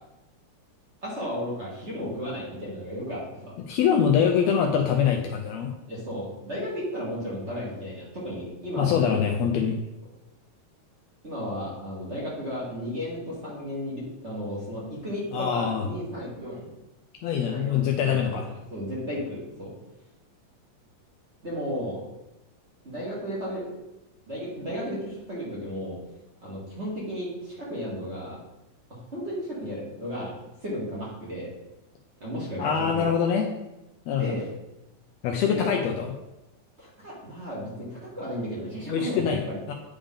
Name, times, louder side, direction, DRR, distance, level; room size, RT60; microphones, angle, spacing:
voice 1, 1.0-3.5 5.9-9.2 11.2-16.7 17.3-18.4 18.7-19.7 21.4-22.0 22.8-23.6 24.3-26.0 26.4-28.4 28.9-30.3 30.6-31.5 32.2-33.1 34.1-34.4 35.4-35.6 36.8-39.6, equal, 25° right, -6 dB, 1.7 m, -34 dB
voice 2, 3.7-5.7 8.8-9.8 15.3-15.9 17.2-18.5 32.6-33.5 34.1-34.4 35.2-36.1 38.8-39.7, left 7 dB, 75° left, 2 dB, 1.7 m, -24 dB
9.9 x 3.5 x 3.7 m, 0.93 s
omnidirectional pair, 3.3 m